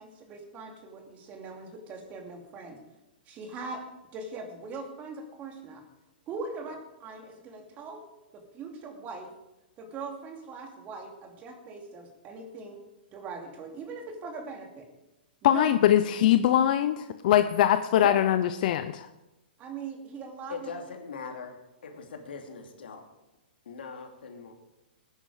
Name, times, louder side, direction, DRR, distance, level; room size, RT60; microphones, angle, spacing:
voice 1, 0.0-2.8 3.3-3.8 4.1-5.8 6.3-8.0 8.3-9.3 9.8-12.8 13.1-14.9 15.4-15.7 17.9-18.2 19.6-20.7, right 4 dB, 30° right, 3 dB, 2.7 m, -40 dB
voice 2, 15.4-19.1, left 11 dB, 55° left, 10 dB, 0.7 m, -22 dB
voice 3, 20.5-21.6 21.8-23.0 23.6-24.5, left 5 dB, 80° left, 3 dB, 2.7 m, -41 dB
19.0 x 10.0 x 5.0 m, 0.99 s
hypercardioid pair, 135°, 5 cm